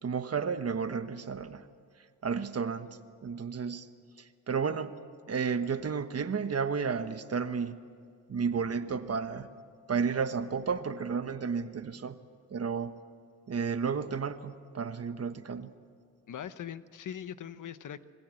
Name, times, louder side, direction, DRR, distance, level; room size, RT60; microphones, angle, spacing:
voice 1, 0.0-1.7 2.2-3.9 4.2-4.9 5.3-7.8 8.3-9.5 9.9-12.2 12.5-13.0 13.5-15.7, right 6 dB, 50° right, 10 dB, 1.3 m, -32 dB
voice 2, 16.3-18.0, left 9 dB, 75° left, 13 dB, 1.0 m, -41 dB
27.0 x 20.5 x 7.8 m, 2.2 s
cardioid pair, 95°, 31 cm